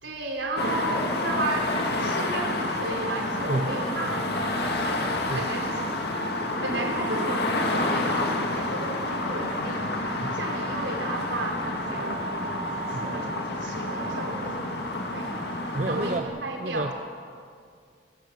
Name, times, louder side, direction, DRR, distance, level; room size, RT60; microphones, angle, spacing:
voice 1, 0.0-5.1 5.3-5.9 6.6-10.0 10.3-16.9, right 2 dB, 85° right, 2 dB, 4.3 m, -33 dB
sound 1, 0.6-16.2, left 1 dB, 60° left, 2.3 m, -29 dB
voice 2, 15.7-16.3 16.6-16.9, right 2 dB, 40° right, 7 dB, 0.7 m, -30 dB
29.5 x 15.5 x 7.5 m, 2.2 s
head